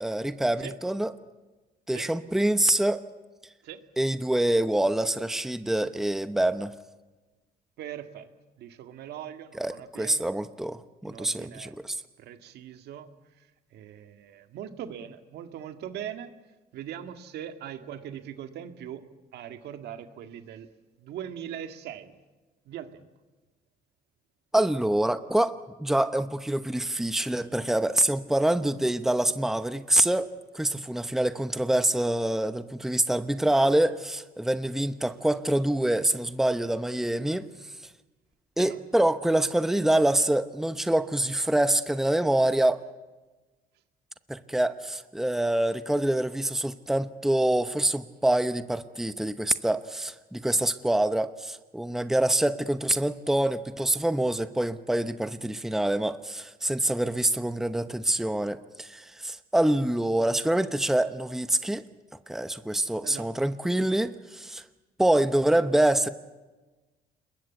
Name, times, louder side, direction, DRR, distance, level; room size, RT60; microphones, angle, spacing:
voice 1, 0.0-1.1 1.9-3.0 4.0-6.7 9.6-12.0 24.5-30.3 30.5-37.5 38.6-42.8 44.3-61.8 62.3-64.6 65.0-66.1, right 1 dB, ahead, 11 dB, 0.9 m, -25 dB
voice 2, 7.8-8.3 8.6-10.3 11.0-11.8 12.2-13.1 13.4-16.3 16.7-19.1 19.3-20.7 21.0-22.2 22.7-23.1 38.6-38.8 63.0-63.3, right 10 dB, 75° right, 7 dB, 2.0 m, -41 dB
27.0 x 22.0 x 8.2 m, 1.2 s
cardioid pair, 110°, 17 cm